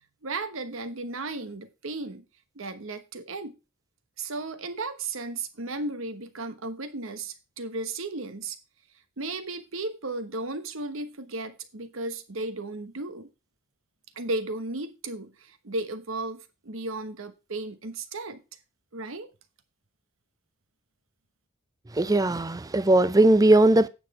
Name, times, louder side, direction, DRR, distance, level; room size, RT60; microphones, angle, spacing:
voice 1, 0.2-2.2 2.5-3.5 4.2-8.6 9.2-13.3 14.2-18.4 18.9-19.3, right 2 dB, 70° right, 1.1 m, -35 dB
voice 2, 21.9-23.9, right 2 dB, 15° right, 0.5 m, -19 dB
9.1 x 6.2 x 4.8 m
head